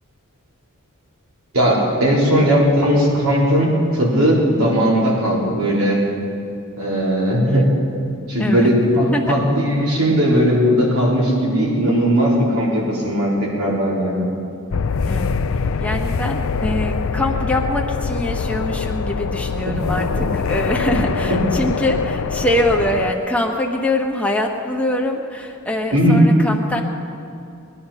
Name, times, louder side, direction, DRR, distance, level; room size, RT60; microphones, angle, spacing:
voice 1, 1.5-6.0 6.8-7.7 8.3-14.2 20.2-20.3 21.3-21.4 25.9-26.2, equal, 90° right, -5 dB, 4.1 m, -17 dB
voice 2, 8.4-9.4 15.1-15.4 15.8-26.8, left 1 dB, 5° left, 0 dB, 1.3 m, -23 dB
sound 1, 14.7-23.1, left 5 dB, 65° left, 0.5 m, -23 dB
20.5 x 11.0 x 5.7 m, 2.5 s
head